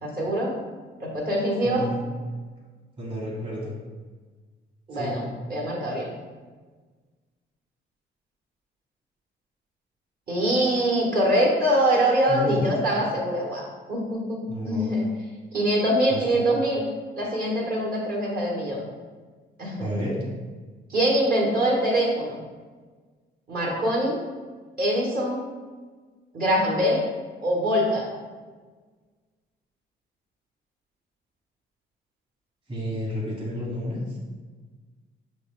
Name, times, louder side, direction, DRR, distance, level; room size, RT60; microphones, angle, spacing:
voice 1, 0.0-0.5 1.0-1.8 4.9-6.1 10.3-13.6 13.9-15.0 15.5-16.8 17.2-18.8 19.6-20.0 20.9-22.4 23.5-24.2 24.8-25.4 26.3-27.0 27.4-28.0, equal, 50° right, -3 dB, 1.4 m, -24 dB
voice 2, 1.6-2.0 3.0-3.7 4.9-5.1 12.3-12.6 14.5-14.9 16.1-16.2 19.8-20.2 32.7-34.2, equal, 25° right, -6 dB, 1.3 m, -31 dB
6.0 x 2.1 x 3.7 m, 1.4 s
cardioid pair, 90°, 20 cm